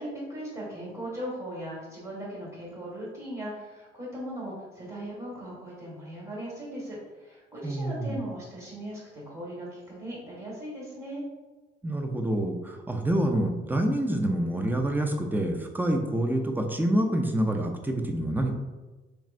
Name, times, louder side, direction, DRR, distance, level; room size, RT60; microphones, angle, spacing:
voice 1, 0.0-11.2, right 1 dB, 30° right, -5 dB, 1.4 m, -38 dB
voice 2, 7.6-8.2 11.8-18.5, right 1 dB, 10° right, 4 dB, 0.5 m, -27 dB
4.5 x 3.1 x 2.5 m, 1.2 s
cardioid pair, 90°, 20 cm